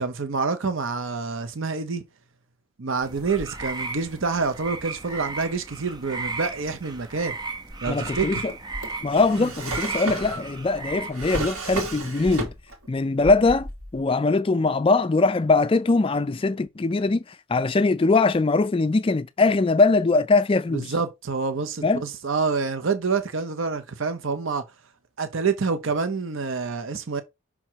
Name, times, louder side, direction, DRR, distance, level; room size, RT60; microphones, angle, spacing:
voice 1, 0.0-2.0 2.8-7.3 7.8-8.5 9.4-9.5 20.7-24.6 25.2-27.2, right 4 dB, 65° right, 0.7 m, -27 dB
sound 1, 3.0-11.1, right 3 dB, 20° right, 0.6 m, -35 dB
Drawer open or close, 7.7-12.9 13.2-14.0, right 2 dB, 85° right, 2.4 m, -33 dB
voice 2, 7.9-8.4 9.0-12.5 12.9-17.2 17.5-20.9 21.8-22.0, left 3 dB, 25° left, 0.3 m, -21 dB
6.0 x 3.6 x 4.5 m
head